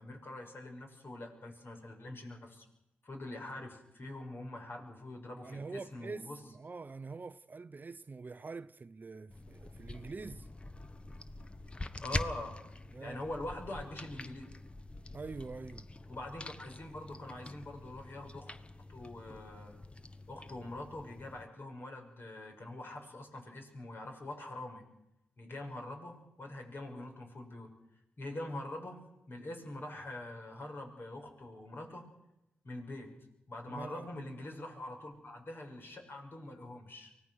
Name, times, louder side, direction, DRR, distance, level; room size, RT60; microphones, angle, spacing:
voice 1, 0.0-2.7 3.0-6.4 12.0-12.6 13.0-14.4 16.1-18.5 18.9-19.8 20.3-24.8 25.4-27.7 28.2-32.0 32.6-33.1 33.5-37.1, left 1 dB, 50° left, 5.9 m, -44 dB
voice 2, 5.4-10.5 12.9-13.2 15.1-15.9 33.7-34.1, right 4 dB, 40° right, 0.7 m, -45 dB
sound 1, 9.3-21.5, left 2 dB, 25° left, 1.3 m, -45 dB
24.0 x 17.5 x 6.4 m
supercardioid pair, 45°, 5 cm